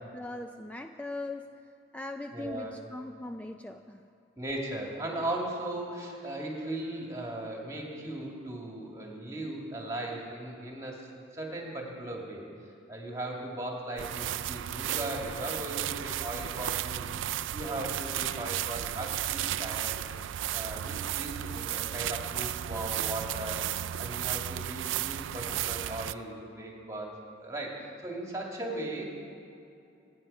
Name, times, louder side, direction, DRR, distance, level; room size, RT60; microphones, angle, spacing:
voice 1, 0.1-1.5 1.9-4.0, left 2 dB, 5° left, 5 dB, 0.3 m, -40 dB
voice 2, 2.3-2.8 4.4-12.5 12.9-17.1 17.5-20.0 20.5-29.1, right 1 dB, 15° right, -1 dB, 2.4 m, -38 dB
sound 1, 14.0-26.1, right 11 dB, 70° right, 0.4 m, -34 dB
26.0 x 9.5 x 5.5 m, 2.7 s
head